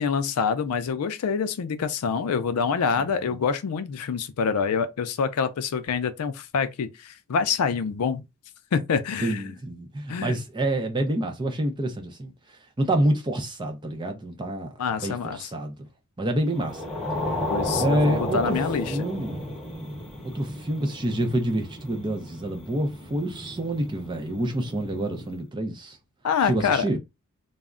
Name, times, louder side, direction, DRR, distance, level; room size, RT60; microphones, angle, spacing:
voice 1, 0.0-8.2 8.7-9.4 10.1-10.4 14.8-15.5 17.5-19.0 26.2-26.8, left 6 dB, 90° left, 0.4 m, -26 dB
voice 2, 3.0-3.4 9.2-12.3 12.8-14.7 15.0-15.9 16.2-16.8 17.8-19.5 20.2-26.0 26.4-27.0, right 1 dB, 20° right, 0.4 m, -27 dB
sound 1, 16.5-25.3, left 1 dB, ahead, 0.9 m, -33 dB
2.2 x 2.0 x 3.6 m
head